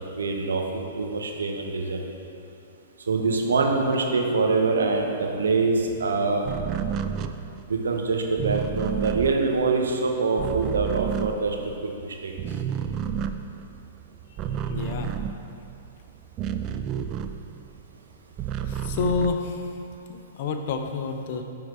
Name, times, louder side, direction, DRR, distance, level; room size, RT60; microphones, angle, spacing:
voice 1, 0.0-2.0 3.1-6.5 7.7-11.6 11.9-12.3, right 3 dB, 70° right, 2 dB, 0.9 m, -24 dB
sound 1, 6.4-12.0 12.3-17.8 18.1-20.0, right 8 dB, 30° right, 0.3 m, -31 dB
voice 2, 14.7-15.1 18.6-19.7 20.1-21.4, left 4 dB, 50° left, 6 dB, 0.6 m, -28 dB
10.5 x 3.8 x 4.7 m, 2.7 s
figure-of-eight pair, 110°, 0 cm